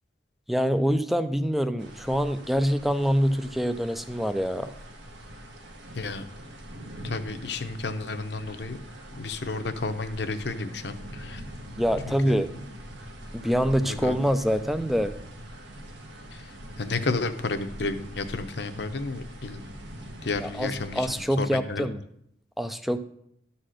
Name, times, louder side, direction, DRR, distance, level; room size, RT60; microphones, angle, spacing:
voice 1, 0.5-4.7 11.8-12.5 13.3-15.1 20.4-22.0 22.6-23.0, equal, ahead, 10 dB, 0.4 m, -25 dB
sound 1, 1.8-21.3, equal, 70° right, 1.3 m, -43 dB
voice 2, 5.9-6.2 7.0-8.8 9.1-11.4 12.1-12.4 13.8-14.2 16.3-19.6 20.2-21.9, left 3 dB, 60° left, 8 dB, 0.8 m, -32 dB
12.5 x 4.2 x 6.3 m, 0.72 s
head